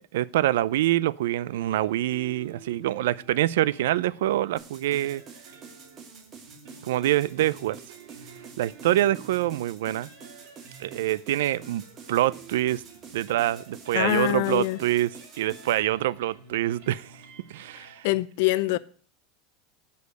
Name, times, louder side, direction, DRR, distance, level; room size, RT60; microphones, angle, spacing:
voice 1, 0.0-5.2 6.8-7.8 8.6-10.1 10.8-12.8 13.1-15.1 15.4-17.2 17.5-18.1, right 14 dB, 90° right, 0.4 m, -25 dB
sound 1, 1.5-18.2, right 5 dB, 65° right, 2.8 m, -49 dB
sound 2, 4.6-15.8, right 5 dB, 25° right, 1.5 m, -48 dB
voice 2, 13.9-14.8 18.0-18.8, left 19 dB, 65° left, 0.5 m, -24 dB
8.2 x 5.3 x 7.7 m
supercardioid pair, 155°, 0 cm